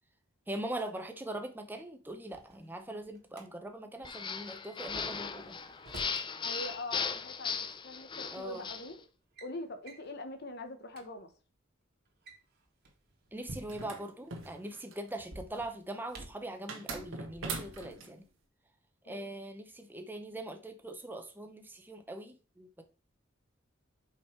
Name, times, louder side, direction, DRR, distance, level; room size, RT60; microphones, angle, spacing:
voice 1, 0.5-5.6 8.3-8.7 13.3-18.3 19.1-22.8, right 1 dB, 10° right, 0.8 m, -41 dB
Drawer open or close, 2.1-3.5 5.1-6.3 7.6-7.7 8.5-8.8 9.1-9.5 9.9-10.1 10.6-10.7 10.9-11.1 12.1-14.0 15.2-16.5, right 1 dB, 55° right, 1.7 m, -50 dB
sound 1, 4.0-8.9, left 6 dB, 25° left, 0.5 m, -37 dB
voice 2, 6.4-9.0 9.4-11.3 19.0-19.3, left 2 dB, 55° left, 1.1 m, -43 dB
sound 2, 13.7-15.1 16.7-18.1, right 3 dB, 85° right, 1.6 m, -41 dB
5.6 x 5.1 x 4.5 m
head